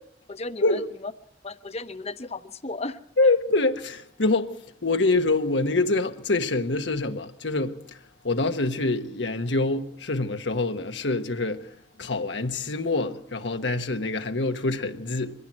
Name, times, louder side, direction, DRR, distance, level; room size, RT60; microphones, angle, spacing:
voice 1, 0.3-1.1 1.4-3.3, left 3 dB, 35° left, 0.9 m, -35 dB
voice 2, 3.2-4.5 4.8-7.8 8.2-11.6 12.0-15.3, left 2 dB, 90° left, 1.3 m, -25 dB
23.5 x 15.0 x 7.6 m
head